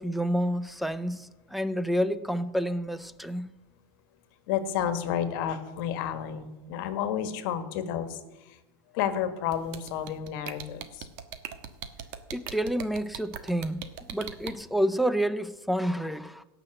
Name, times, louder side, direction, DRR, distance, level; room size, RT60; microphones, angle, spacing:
voice 1, 0.0-3.5 12.3-13.9 14.1-16.4, equal, ahead, 0.5 m, -29 dB
voice 2, 4.5-8.6 8.9-11.1, left 9 dB, 60° left, 1.7 m, -31 dB
sound 1, 9.5-14.5, right 9 dB, 55° right, 1.3 m, -38 dB
17.0 x 6.0 x 7.8 m
supercardioid pair, 145°, 12 cm